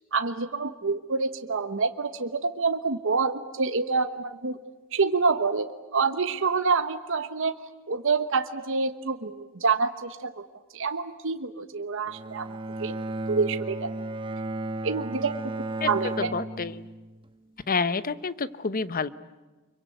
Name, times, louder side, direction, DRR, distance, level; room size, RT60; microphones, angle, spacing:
voice 1, 0.1-4.6 4.9-7.5 7.9-10.3 10.7-13.0 13.3-13.9 14.8-15.4 15.8-16.4, right 4 dB, 65° right, 9 dB, 1.1 m, -27 dB
Bowed string instrument, 12.1-17.3, right 2 dB, 25° right, 1.2 m, -34 dB
voice 2, 16.3-16.8 17.7-19.1, left 4 dB, 45° left, 15 dB, 0.9 m, -28 dB
25.5 x 23.5 x 9.3 m, 1.2 s
head